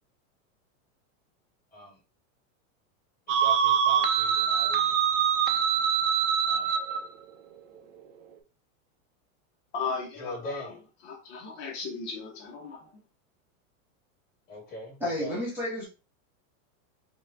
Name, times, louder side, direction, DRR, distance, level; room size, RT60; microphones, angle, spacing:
sound 1, 3.3-7.0, right 8 dB, 65° right, 0.8 m, -24 dB
voice 1, 3.4-5.0 6.5-6.7 10.2-10.8 14.5-15.4, left 1 dB, 20° left, 1.7 m, -41 dB
voice 2, 9.7-10.7 11.0-12.8, left 5 dB, 50° left, 0.9 m, -36 dB
voice 3, 15.0-15.8, left 1 dB, 5° right, 0.8 m, -31 dB
5.3 x 2.2 x 2.5 m
supercardioid pair, 165°, 41 cm